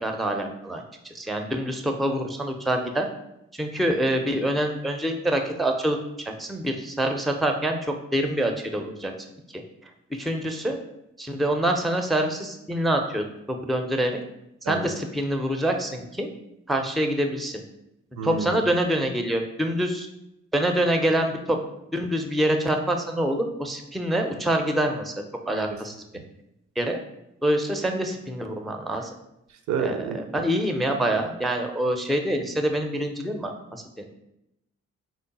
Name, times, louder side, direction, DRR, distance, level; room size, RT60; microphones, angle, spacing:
voice 1, 0.0-0.8 1.1-3.1 3.5-9.1 9.5-9.6 10.1-10.8 11.2-14.1 14.6-16.3 16.7-17.6 18.2-20.1 20.5-21.6 21.9-25.1 25.5-26.0 26.8-27.0 27.4-29.1 29.8-34.0, right 1 dB, ahead, 4 dB, 0.4 m, -26 dB
voice 2, 18.2-18.5 29.7-30.2, right 6 dB, 65° right, 7 dB, 0.5 m, -28 dB
3.7 x 2.0 x 4.0 m, 0.84 s
cardioid pair, 60°, 31 cm